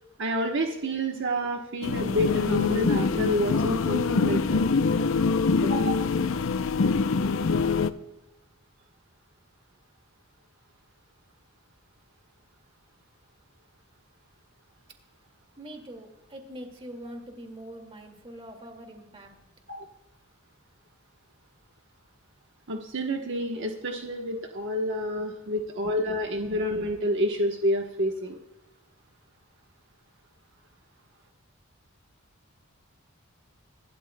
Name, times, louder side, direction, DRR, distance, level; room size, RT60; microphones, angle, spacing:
voice 1, 0.2-4.6 5.6-6.1 19.7-19.8 22.7-28.4, equal, 60° right, 2 dB, 1.1 m, -29 dB
sound 1, 1.8-7.9, left 4 dB, 70° left, 0.6 m, -24 dB
voice 2, 15.6-19.7 25.1-25.5, right 1 dB, 25° right, 3 dB, 2.2 m, -44 dB
25.5 x 12.5 x 2.2 m, 0.95 s
head